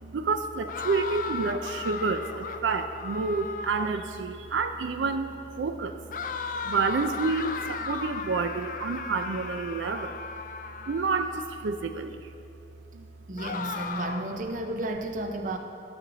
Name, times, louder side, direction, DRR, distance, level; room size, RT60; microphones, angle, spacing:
voice 1, 0.0-6.0 6.6-10.2 10.8-12.3 12.9-13.0, right 4 dB, 85° right, 8 dB, 0.4 m, -29 dB
sound 1, 0.7-4.1 6.1-11.4 13.4-14.4, left 4 dB, 45° left, 0.4 m, -36 dB
voice 2, 13.3-15.6, right 1 dB, 45° right, 5 dB, 0.6 m, -32 dB
12.0 x 7.0 x 3.9 m, 2.6 s
head